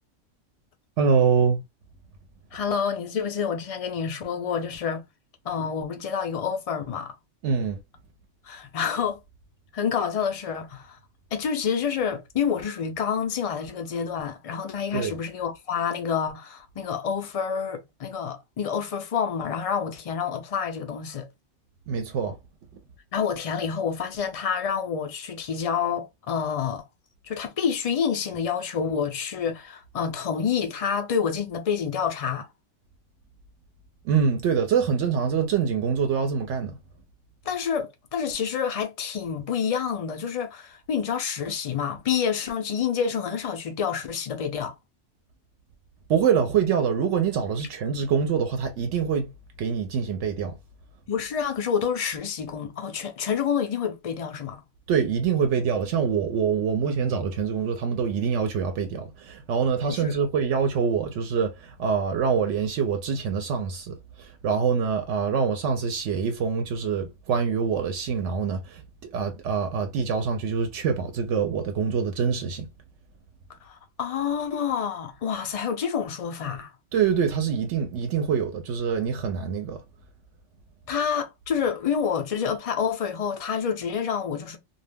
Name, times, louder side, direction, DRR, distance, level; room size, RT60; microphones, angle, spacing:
voice 1, 1.0-1.6 7.4-7.8 14.9-15.1 21.9-22.4 34.0-36.8 46.1-49.3 49.6-50.5 54.9-72.7 76.9-79.8, right 6 dB, 75° right, 0.9 m, -25 dB
voice 2, 2.5-5.0 5.4-7.1 8.4-9.2 9.7-11.0 11.3-21.3 23.1-26.9 27.2-32.5 37.5-44.7 51.1-54.6 59.9-60.2 73.6-76.7 80.9-84.6, left 7 dB, 55° left, 0.4 m, -28 dB
2.3 x 2.1 x 3.2 m
omnidirectional pair, 1.2 m